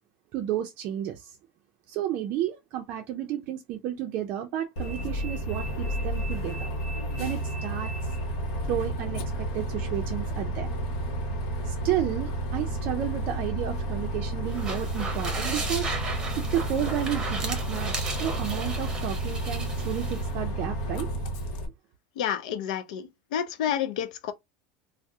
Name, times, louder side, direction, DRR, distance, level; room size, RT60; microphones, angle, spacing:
voice 1, 0.3-1.4 1.9-6.7 7.2-7.9 8.6-10.7 11.6-16.0 16.4-21.1, right 11 dB, 45° right, 0.4 m, -32 dB
Bus, 4.8-21.7, right 1 dB, 65° left, 0.9 m, -31 dB
sound 1, 14.5-20.3, right 3 dB, 15° right, 0.8 m, -35 dB
voice 2, 22.2-24.3, left 9 dB, 85° left, 0.5 m, -30 dB
2.7 x 2.0 x 3.4 m
supercardioid pair, 160°, 4 cm